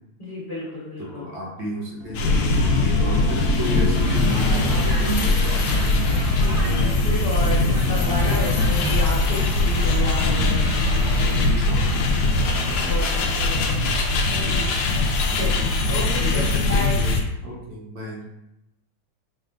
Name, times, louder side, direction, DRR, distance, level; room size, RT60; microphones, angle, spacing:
voice 1, 0.2-1.3 6.2-10.7 12.4-14.7 15.3-17.0, left 1 dB, 35° left, -8 dB, 1.3 m, -32 dB
voice 2, 1.1-5.9 6.7-7.1 11.6-13.3 16.2-18.3, equal, 65° right, -3 dB, 1.6 m, -33 dB
sound 1, 2.0-12.8, left 1 dB, 20° right, 0.6 m, -31 dB
sound 2, 2.1-17.2, left 2 dB, 70° left, 1.0 m, -21 dB
sound 3, 4.0-11.8, right 1 dB, 45° right, 1.1 m, -37 dB
5.3 x 3.4 x 2.5 m, 0.91 s
omnidirectional pair, 2.3 m